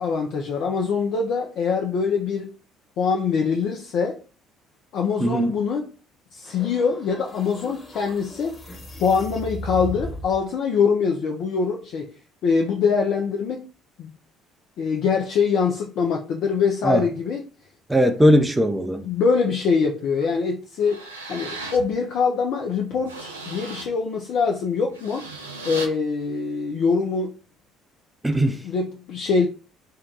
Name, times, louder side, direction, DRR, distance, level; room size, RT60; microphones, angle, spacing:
voice 1, 0.0-2.5 3.0-4.2 4.9-5.9 6.3-8.6 9.0-12.1 12.4-13.7 14.0-14.1 14.8-17.4 19.0-21.0 21.3-25.3 25.6-27.3 28.4-29.5, left 5 dB, 55° left, 0.4 m, -23 dB
voice 2, 5.2-5.6 16.8-17.0 17.9-19.0 28.2-28.6, equal, 10° right, 0.5 m, -19 dB
sound 1, 6.4-10.5, equal, 20° left, 1.0 m, -37 dB
sound 2, 20.2-20.3 20.8-21.9 22.4-22.5 22.9-23.9 24.8-25.9, right 3 dB, 85° right, 0.4 m, -36 dB
2.8 x 2.2 x 3.6 m
figure-of-eight pair, 55°, 0 cm